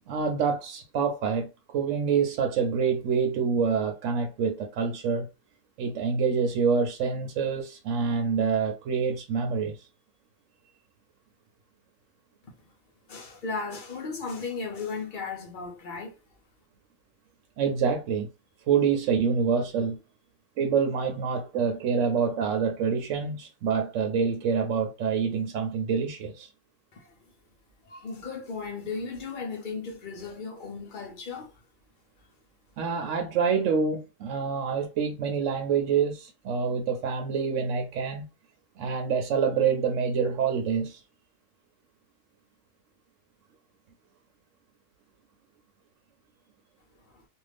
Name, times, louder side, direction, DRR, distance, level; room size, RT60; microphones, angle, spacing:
voice 1, 0.1-5.3 5.8-9.8 17.6-18.3 18.7-20.0 20.6-26.5 32.8-38.3 38.8-41.0, right 6 dB, 70° right, 0.9 m, -26 dB
voice 2, 13.1-16.2 26.9-27.1 27.8-31.5 47.1-47.2, left 4 dB, 45° left, 0.7 m, -36 dB
2.5 x 2.3 x 3.3 m
omnidirectional pair, 1.4 m